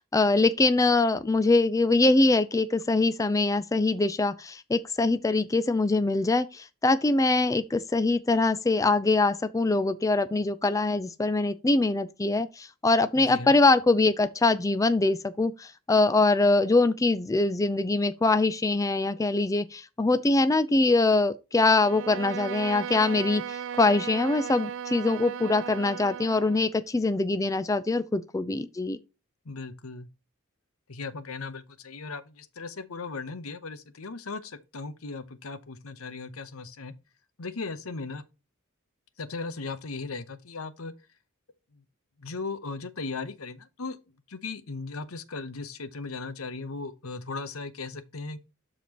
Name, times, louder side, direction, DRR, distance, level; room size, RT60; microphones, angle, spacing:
voice 1, 0.0-29.0, left 3 dB, 15° left, 0.4 m, -23 dB
voice 2, 13.1-13.5 29.4-30.1 30.9-36.9 37.4-38.2 39.2-40.9 41.7-41.8 42.2-44.0 44.3-48.4, left 3 dB, 80° left, 0.9 m, -37 dB
Bowed string instrument, 21.7-26.7, right 8 dB, 60° right, 0.4 m, -36 dB
12.5 x 4.2 x 2.9 m
head